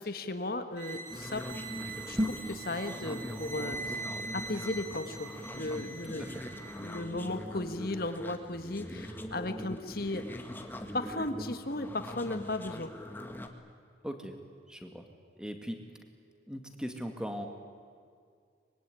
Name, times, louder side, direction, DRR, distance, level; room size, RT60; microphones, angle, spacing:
voice 1, 0.0-1.5 2.1-4.0 4.3-6.3 6.8-10.2 10.9-12.9, left 2 dB, 55° left, 8 dB, 1.6 m, -36 dB
sound 1, 0.7-7.1, right 3 dB, 45° right, 2.1 m, -43 dB
sound 2, 1.1-13.5, equal, 10° left, 1.7 m, -42 dB
sound 3, 2.1-2.6, equal, 25° right, 1.5 m, -31 dB
voice 2, 14.0-14.4 14.7-15.1 15.4-15.8 16.5-17.5, equal, 5° right, 5 dB, 2.2 m, -39 dB
24.5 x 22.0 x 9.9 m, 2.2 s
head